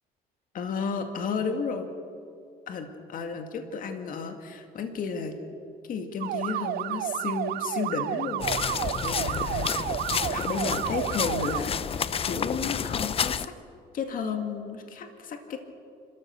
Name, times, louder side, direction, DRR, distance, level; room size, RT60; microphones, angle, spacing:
voice 1, 0.5-1.9 2.7-5.4 5.9-9.8 10.3-13.5 13.9-15.6, left 5 dB, 55° left, 5 dB, 2.2 m, -33 dB
sound 1, 6.2-11.6, right 14 dB, 70° right, 0.5 m, -31 dB
sound 2, 8.4-13.5, left 7 dB, 35° left, 0.6 m, -30 dB
30.0 x 14.0 x 6.7 m, 2.4 s
cardioid pair, 110°, 17 cm